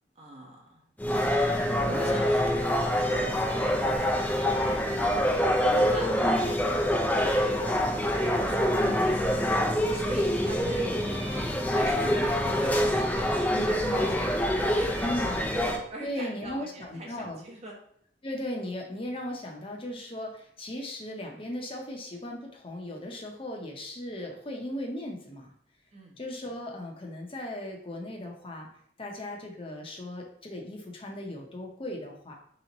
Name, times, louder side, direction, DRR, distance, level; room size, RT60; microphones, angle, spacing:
voice 1, 0.2-0.8 1.8-5.4 5.7-15.3 15.9-17.8 25.9-26.2, right 1 dB, 35° right, -2 dB, 1.0 m, -42 dB
sound 1, 1.0-15.8, equal, 10° left, 0.4 m, -26 dB
voice 2, 6.2-6.5 8.8-9.2 10.3-10.7 13.5-14.3 15.0-15.5 16.0-17.4 18.2-25.5 26.2-28.7 29.0-32.3, left 1 dB, 30° left, 1 dB, 0.8 m, -37 dB
3.4 x 3.0 x 3.9 m, 0.64 s
head